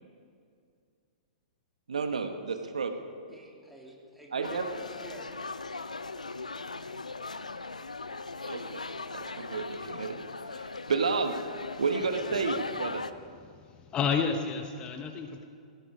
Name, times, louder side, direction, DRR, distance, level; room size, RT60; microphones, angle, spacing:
voice 1, 1.9-2.9 4.3-4.6 8.5-8.8 9.1-10.2 10.5-11.4 11.8-13.0, right 5 dB, 70° right, 7 dB, 1.2 m, -31 dB
voice 2, 3.3-5.7, equal, ahead, -2 dB, 2.8 m, -48 dB
sound 1, 4.4-13.1, left 3 dB, 80° left, 0.6 m, -39 dB
voice 3, 13.4-15.5, left 6 dB, 25° left, 6 dB, 1.0 m, -31 dB
17.0 x 16.0 x 4.9 m, 2.3 s
figure-of-eight pair, 110°, 4 cm